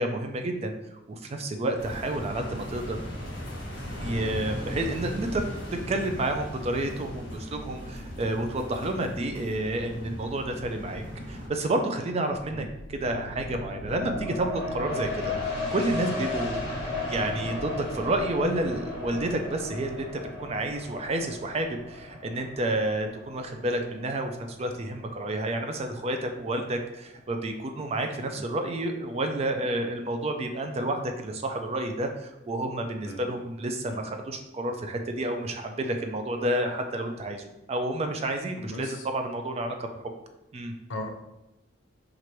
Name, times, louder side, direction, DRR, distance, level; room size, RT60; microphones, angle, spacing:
voice 1, 0.0-3.0 4.0-5.4 5.9-16.6 17.0-40.0 40.5-40.7, right 1 dB, 35° right, 5 dB, 0.4 m, -30 dB
sound 1, 1.8-11.5, equal, 65° left, 1.4 m, -37 dB
sound 2, 12.4-25.6 26.0-26.1, left 2 dB, 30° left, 1.4 m, -35 dB
voice 2, 38.6-39.0 40.9-41.1, left 1 dB, 85° left, 4 dB, 0.6 m, -37 dB
3.0 x 2.5 x 4.4 m, 0.94 s
head